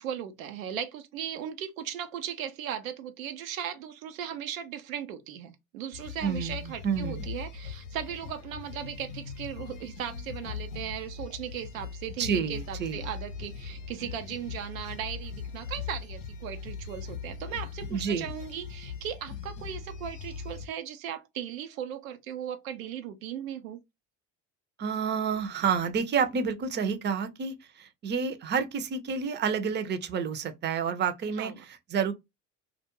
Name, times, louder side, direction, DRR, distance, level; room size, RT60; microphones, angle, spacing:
voice 1, 0.0-23.8 31.4-31.6, right 9 dB, 90° right, 0.5 m, -37 dB
sound 1, 5.9-20.7, left 6 dB, 90° left, 0.6 m, -40 dB
voice 2, 6.2-7.3 12.2-13.0 17.9-18.3 24.8-32.1, right 6 dB, 30° right, 0.5 m, -29 dB
2.3 x 2.1 x 2.9 m
hypercardioid pair, 65°, 39 cm